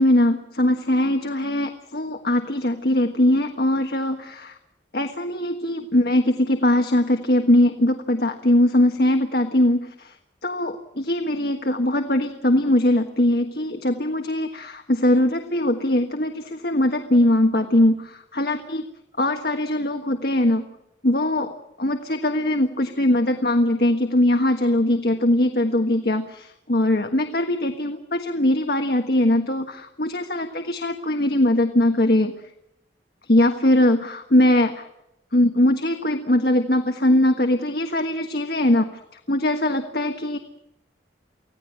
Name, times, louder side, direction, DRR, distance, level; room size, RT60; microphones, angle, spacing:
voice 1, 0.0-4.5 4.9-10.1 10.4-18.8 19.2-20.6 21.0-21.5 21.8-32.3 33.3-34.9 35.3-38.9 39.3-40.4, left 1 dB, 55° left, 5 dB, 1.5 m, -21 dB
25.0 x 16.5 x 8.8 m, 0.83 s
head